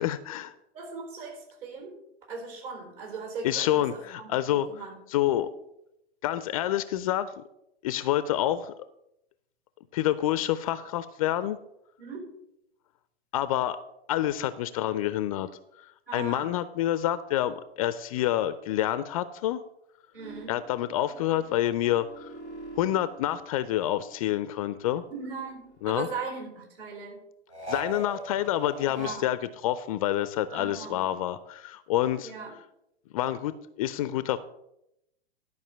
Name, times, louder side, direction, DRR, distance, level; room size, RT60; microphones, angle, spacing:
voice 1, 0.0-0.5 3.4-4.7 5.1-5.5 6.2-7.4 7.8-8.7 9.9-11.6 13.3-13.8 14.1-15.5 15.8-15.9 16.1-19.6 20.5-22.3 22.8-25.0 25.8-26.1 27.7-32.3 33.1-34.4, left 12 dB, 35° left, 14 dB, 0.4 m, -28 dB
voice 2, 0.7-2.0 2.3-5.0 12.0-12.3 16.1-16.5 20.1-20.6 25.1-27.3 28.9-29.3 30.5-31.0 32.2-32.5, right 5 dB, 55° right, 1 dB, 4.4 m, -39 dB
sound 1, 20.2-24.1 24.4-26.0 27.5-29.1, right 1 dB, 90° right, 2.2 m, -43 dB
12.0 x 5.3 x 6.5 m, 0.83 s
figure-of-eight pair, 105°, 33 cm